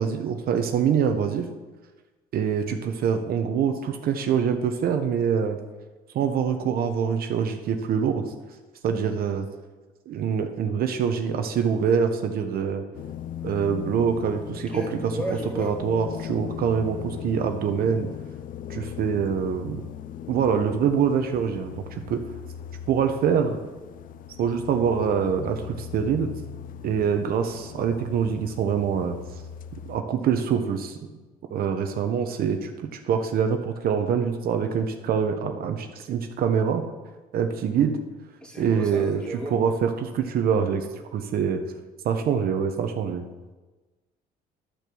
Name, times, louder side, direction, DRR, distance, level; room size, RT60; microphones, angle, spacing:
voice 1, 0.0-1.5 2.3-5.6 6.1-8.2 8.8-9.5 10.1-12.8 13.4-15.1 15.6-18.1 18.7-19.8 20.3-22.2 22.9-23.6 24.4-26.3 26.8-29.1 29.9-31.0 31.5-36.8 37.3-38.0 38.6-40.9 41.1-41.6 42.0-43.2, right 7 dB, 65° right, 6 dB, 0.9 m, -25 dB
sound 1, 12.9-30.0, left 9 dB, 55° left, 0.5 m, -39 dB
voice 2, 14.7-15.8 38.4-39.6, right 1 dB, 5° left, -2 dB, 2.4 m, -34 dB
12.0 x 4.7 x 6.9 m, 1.2 s
cardioid pair, 110°, 17 cm